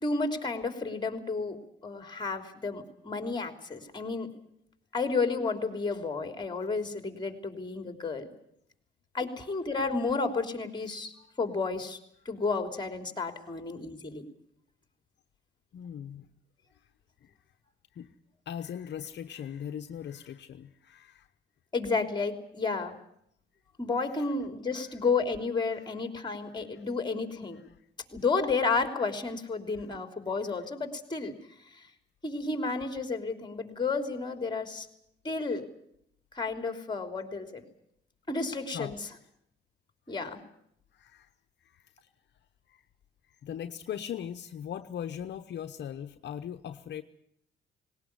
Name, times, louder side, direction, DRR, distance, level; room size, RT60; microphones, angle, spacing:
voice 1, 0.0-1.6 1.8-4.3 4.9-8.3 9.1-11.1 11.4-12.0 12.2-14.2 21.7-22.9 23.8-27.6 28.1-31.3 31.7-31.9 32.2-34.9 35.2-35.6 36.3-37.6 38.3-39.1 40.1-40.4, left 4 dB, 20° left, 6 dB, 3.4 m, -31 dB
voice 2, 15.7-16.3 17.2-17.3 17.9-18.1 18.5-21.3 24.7-24.9 25.8-25.9 27.5-27.6 38.7-38.9 40.9-41.3 41.6-41.8 42.7-42.8 43.4-47.0, left 9 dB, 60° left, 8 dB, 0.9 m, -39 dB
19.0 x 18.5 x 9.7 m, 0.75 s
cardioid pair, 90°, 20 cm